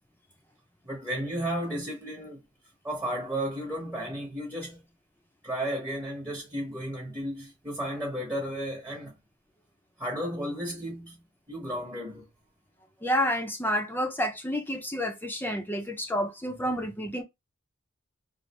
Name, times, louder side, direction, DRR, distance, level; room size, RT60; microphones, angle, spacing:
voice 1, 0.8-2.4 2.8-4.9 5.4-9.2 10.0-12.3, equal, 10° right, 0.9 m, -33 dB
voice 2, 13.0-17.2, equal, 10° left, 0.6 m, -29 dB
3.3 x 2.4 x 2.9 m
head